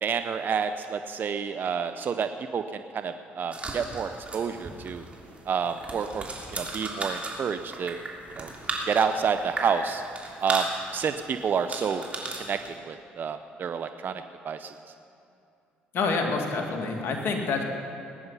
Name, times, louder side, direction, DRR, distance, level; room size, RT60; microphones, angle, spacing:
voice 1, 0.0-5.0 5.5-6.3 6.5-8.0 8.3-8.5 8.9-10.0 10.4-12.0 12.4-12.6 12.9-14.7, right 6 dB, 50° right, 9 dB, 0.6 m, -29 dB
sound 1, 3.5-12.8, right 2 dB, 30° right, 3.1 m, -36 dB
voice 2, 15.9-17.6, left 4 dB, 60° left, 2 dB, 2.2 m, -27 dB
19.0 x 9.6 x 5.6 m, 2.6 s
supercardioid pair, 65°, 4 cm